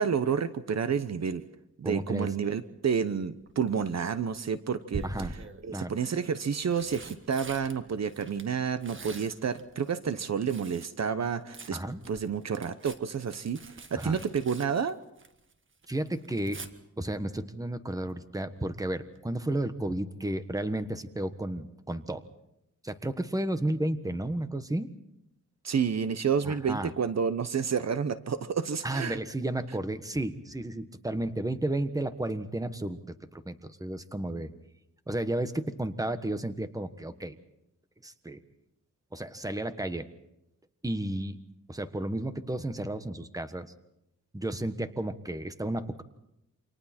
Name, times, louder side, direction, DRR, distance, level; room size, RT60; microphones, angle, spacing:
voice 1, 0.0-1.4 1.8-5.4 5.6-11.8 12.1-15.0 25.6-29.2, right 6 dB, 55° right, 13 dB, 1.0 m, -30 dB
voice 2, 1.8-2.3 5.0-5.3 5.7-5.9 11.7-12.0 14.0-14.2 15.9-16.6 17.0-22.2 22.8-24.9 26.4-26.9 28.8-33.0 33.3-34.5 35.1-37.3 38.0-38.4 39.1-40.1 40.8-41.3 41.7-43.7 44.3-46.0, right 1 dB, 10° right, 10 dB, 1.4 m, -32 dB
Tearing, 3.4-3.9 4.9-5.6 6.4-10.9 11.2-15.5 15.8-16.7 18.6-18.8 19.1-19.2, right 3 dB, 40° right, 1.6 m, -44 dB
29.0 x 26.0 x 4.4 m, 0.82 s
wide cardioid pair, 110°, 31 cm